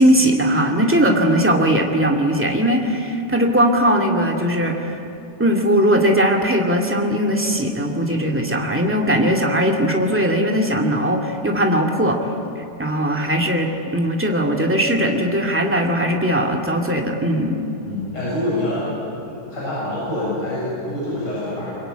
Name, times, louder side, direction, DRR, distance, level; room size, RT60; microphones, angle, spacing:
voice 1, 0.0-4.9 5.4-12.2 12.8-17.7, equal, 5° right, 1 dB, 1.5 m, -19 dB
voice 2, 17.8-18.9 19.2-21.8, left 1 dB, 30° left, -8 dB, 8.0 m, -26 dB
25.0 x 23.0 x 9.0 m, 2.8 s
omnidirectional pair, 3.8 m